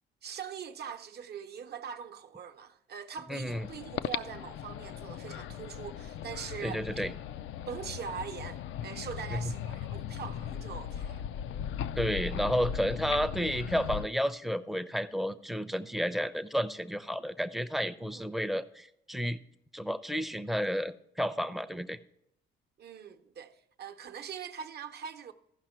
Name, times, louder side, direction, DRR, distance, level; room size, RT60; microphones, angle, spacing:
voice 1, 0.2-6.8 7.7-11.2 18.0-18.3 22.8-25.3, right 7 dB, 55° right, 0.8 m, -42 dB
voice 2, 3.3-3.7 6.6-7.1 9.3-9.5 12.0-19.4 19.7-22.0, equal, ahead, 0.5 m, -31 dB
sound 1, 3.5-14.1, left 9 dB, 75° left, 0.4 m, -38 dB
15.0 x 5.6 x 4.4 m
cardioid pair, 90°, 20 cm